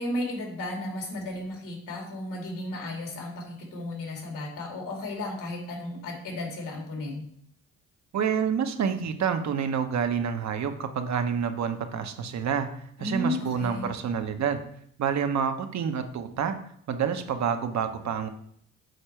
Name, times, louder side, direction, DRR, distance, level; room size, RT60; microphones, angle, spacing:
voice 1, 0.0-7.3 13.0-13.9, left 1 dB, 70° left, 1 dB, 2.6 m, -34 dB
voice 2, 8.1-14.6 15.0-16.6 16.9-18.3, right 7 dB, 55° right, 7 dB, 0.9 m, -28 dB
6.6 x 4.3 x 4.5 m, 0.67 s
supercardioid pair, 60°, 34 cm